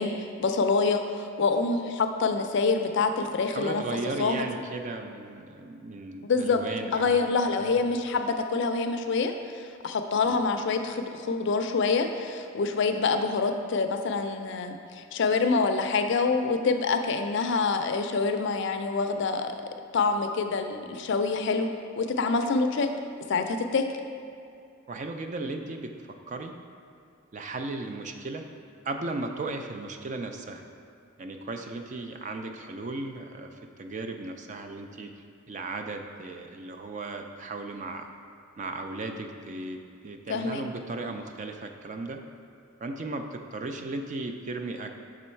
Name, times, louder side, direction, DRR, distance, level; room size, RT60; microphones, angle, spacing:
voice 1, 0.0-3.8 4.2-4.5 6.2-6.6 6.9-19.6 19.9-21.7 22.0-22.9 23.3-23.9 40.3-40.6, left 4 dB, 60° left, 6 dB, 0.4 m, -26 dB
voice 2, 3.5-7.3 7.6-7.7 10.2-10.4 24.9-26.5 27.3-28.4 28.8-30.6 31.2-35.1 35.5-38.1 38.6-39.8 40.0-42.2 42.8-44.9, right 2 dB, 35° right, 5 dB, 0.4 m, -36 dB
6.1 x 3.8 x 4.4 m, 2.6 s
head